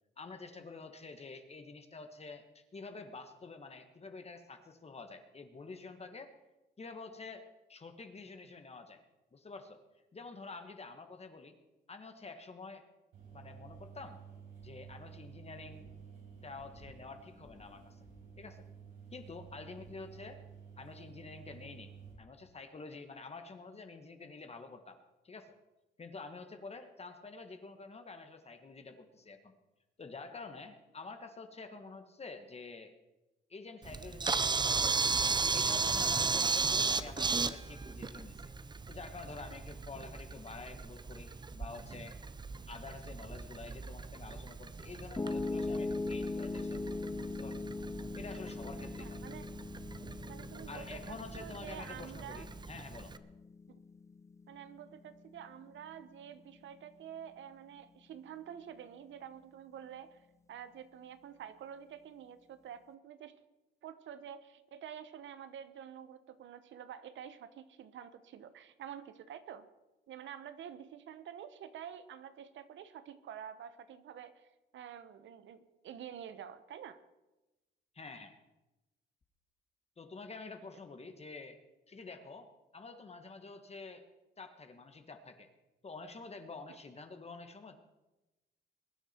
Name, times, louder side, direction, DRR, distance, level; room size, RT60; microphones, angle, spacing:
voice 1, 0.2-6.3 6.8-9.0 9.3-9.8 10.1-11.6 11.9-12.8 13.3-14.2 14.6-15.9 16.4-18.0 18.4-18.6 19.1-20.4 20.8-21.9 22.2-25.0 25.2-25.5 26.0-29.5 30.0-32.9 33.5-35.1 35.5-38.5 38.9-42.2 42.7-46.9 47.2-47.6 48.1-49.2 50.7-53.1 77.9-78.4 80.0-81.6 81.9-84.1 84.4-85.5 85.8-87.8, left 3 dB, 30° left, 7 dB, 1.6 m, -48 dB
sound 1, 13.1-22.1, right 6 dB, 90° right, 6.2 m, -52 dB
Camera, 33.8-53.2, right 4 dB, 20° right, 0.7 m, -36 dB
Piano, 45.2-57.3, left 3 dB, 15° left, 0.6 m, -41 dB
voice 2, 49.0-49.4 50.3-52.5 53.7-53.8 54.5-63.4 63.8-69.7 70.1-74.5 74.7-77.0, right 9 dB, 70° right, 13 dB, 1.0 m, -48 dB
22.0 x 9.9 x 4.5 m, 1.0 s
cardioid pair, 90°, 20 cm